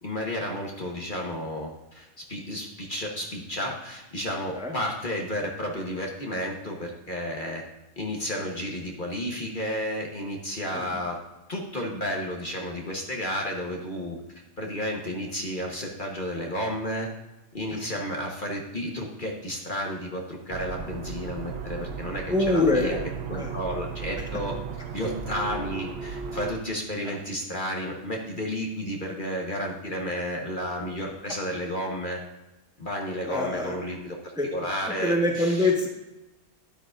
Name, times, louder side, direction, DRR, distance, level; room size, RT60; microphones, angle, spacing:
voice 1, 0.0-7.6 8.0-11.2 11.5-17.1 17.5-23.0 23.3-24.6 24.9-32.2 32.8-35.7, equal, 40° left, 0 dB, 1.3 m, -32 dB
sound 1, 20.5-26.5, right 6 dB, 55° right, 0.8 m, -36 dB
voice 2, 22.3-23.0 23.3-23.5 33.3-33.7 34.4-34.5 35.0-35.9, left 2 dB, 5° right, 0 dB, 1.2 m, -24 dB
12.5 x 9.4 x 2.5 m, 1.0 s
omnidirectional pair, 1.5 m